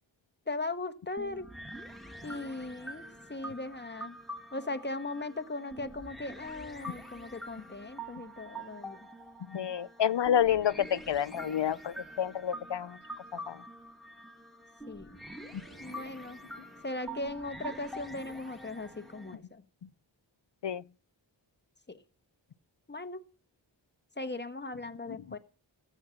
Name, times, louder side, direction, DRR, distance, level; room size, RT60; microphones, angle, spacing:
voice 1, 0.5-1.5 2.2-4.2 4.5-9.1 14.9-15.2 15.8-16.4 16.8-19.6 21.9-22.0 22.9-23.2 24.2-25.4, left 2 dB, 20° left, 1.3 m, -38 dB
sound 1, 1.2-19.3, right 1 dB, ahead, 2.4 m, -46 dB
voice 2, 9.5-13.0 13.3-13.6 15.5-15.6 20.6-20.8 25.1-25.2, left 9 dB, 65° left, 0.7 m, -29 dB
14.5 x 8.2 x 5.8 m
wide cardioid pair, 45°, 46 cm